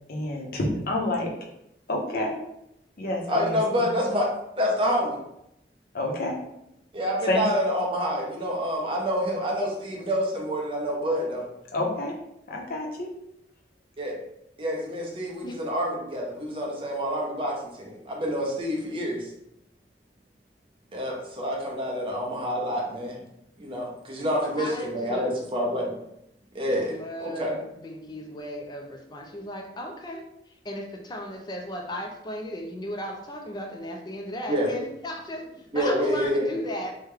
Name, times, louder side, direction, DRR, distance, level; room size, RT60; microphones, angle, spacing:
voice 1, 0.1-1.3 1.9-2.4 3.0-3.9 5.9-6.3 7.3-7.4 11.7-12.1 12.5-13.1, left 1 dB, 55° left, -1 dB, 0.7 m, -28 dB
voice 2, 3.3-4.3 4.6-5.2 6.9-11.4 14.0-14.2 14.6-19.3 20.9-23.2 23.6-26.0 26.5-27.5 34.5-34.7 35.7-36.5, equal, 30° right, -2 dB, 0.7 m, -27 dB
voice 3, 24.4-25.3 26.8-36.9, equal, 25° left, 2 dB, 0.4 m, -36 dB
3.4 x 2.2 x 3.3 m, 0.81 s
head